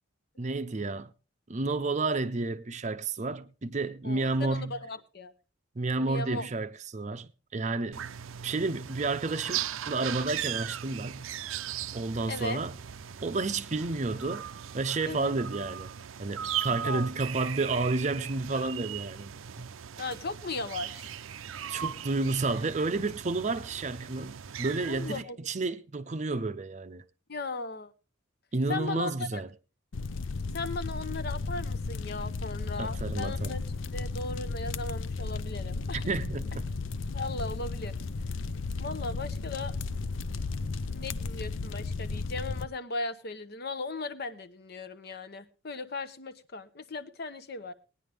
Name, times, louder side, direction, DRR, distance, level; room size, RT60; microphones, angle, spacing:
voice 1, 0.4-1.1 1.5-4.8 5.8-8.0 8.4-11.3 11.9-12.7 13.2-15.9 16.2-19.7 21.7-27.0 28.5-29.5 32.8-33.6 35.9-36.7, right 3 dB, 35° right, 0.6 m, -31 dB
voice 2, 4.0-5.3 6.0-6.5 12.3-12.6 15.1-15.3 16.7-17.1 20.0-21.1 24.9-25.4 27.3-27.9 28.7-29.4 30.5-33.6 33.9-36.1 37.1-37.9 38.8-39.8 40.9-47.7, left 3 dB, 50° left, 0.8 m, -37 dB
sound 1, 7.9-25.2, right 9 dB, 80° right, 0.5 m, -38 dB
sound 2, 29.9-42.6, left 3 dB, 75° left, 0.6 m, -34 dB
18.5 x 10.0 x 3.4 m
head